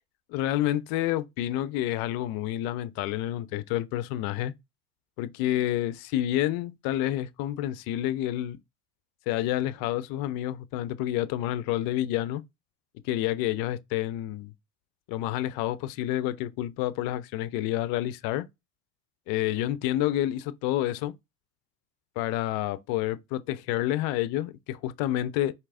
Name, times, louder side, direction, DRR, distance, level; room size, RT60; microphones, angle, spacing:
voice 1, 0.3-4.5 5.2-8.6 9.3-12.4 13.0-14.5 15.1-18.4 19.3-21.1 22.2-25.5, left 13 dB, 50° left, 0.5 m, -29 dB
4.5 x 2.8 x 2.5 m
hypercardioid pair, 85°, 48 cm